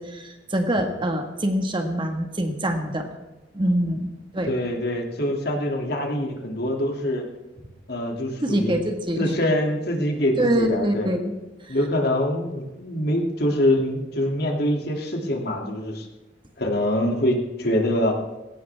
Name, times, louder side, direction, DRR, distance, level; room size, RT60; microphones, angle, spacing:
voice 1, 0.0-3.1 3.5-4.5 8.4-9.3 10.4-11.3 11.6-11.8, right 1 dB, 25° right, 4 dB, 1.7 m, -25 dB
voice 2, 4.5-7.2 7.9-8.7 9.2-11.1 11.7-16.1 16.6-18.2, left 1 dB, 55° left, 2 dB, 2.7 m, -24 dB
19.5 x 17.5 x 3.6 m, 1.1 s
head